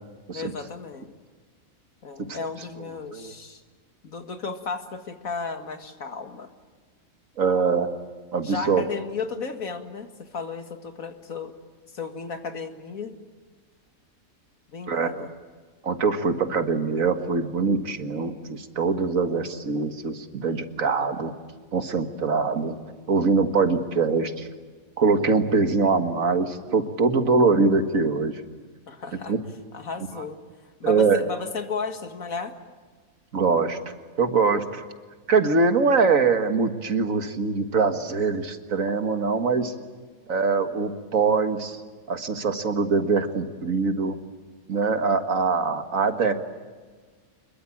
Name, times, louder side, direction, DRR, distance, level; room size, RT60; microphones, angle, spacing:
voice 1, 0.3-1.1 2.0-3.6 4.0-6.5 8.4-11.5 11.9-13.2 14.7-15.3 28.9-29.3 29.7-30.4 30.8-32.5, left 5 dB, 80° left, 7 dB, 2.4 m, -34 dB
voice 2, 7.4-7.9 8.3-8.8 14.9-15.3 15.8-21.3 21.7-22.8 23.1-24.5 25.0-28.4 29.3-29.4 30.8-31.2 33.3-33.8 34.2-34.8 35.3-39.7 40.3-41.8 42.1-44.2 44.7-46.3, right 4 dB, 70° right, 8 dB, 2.1 m, -23 dB
26.0 x 22.0 x 8.6 m, 1.5 s
omnidirectional pair, 1.4 m